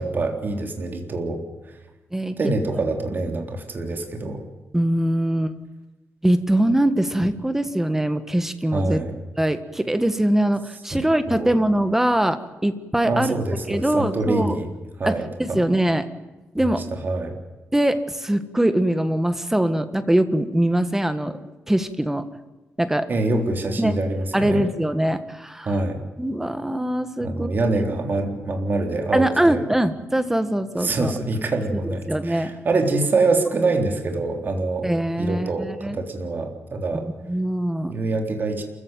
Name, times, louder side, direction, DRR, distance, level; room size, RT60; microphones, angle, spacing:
voice 1, 0.0-1.8 2.4-4.4 8.7-9.2 10.9-11.5 13.0-14.7 15.0-15.6 16.6-17.4 23.1-24.7 25.6-26.0 27.2-29.6 30.8-34.9 35.2-37.1 37.9-38.6, right 2 dB, 45° right, 3 dB, 3.7 m, -25 dB
voice 2, 4.7-5.5 6.2-9.0 9.4-13.3 13.7-14.6 15.0-16.1 16.5-16.8 17.7-21.4 21.7-22.3 22.8-23.1 23.8-23.9 24.3-25.7 26.2-27.5 29.1-31.1 31.7-32.5 34.8-36.0 37.2-37.9, right 1 dB, 10° right, 10 dB, 1.6 m, -22 dB
27.5 x 15.5 x 9.3 m, 1.1 s
wide cardioid pair, 130°, 5 cm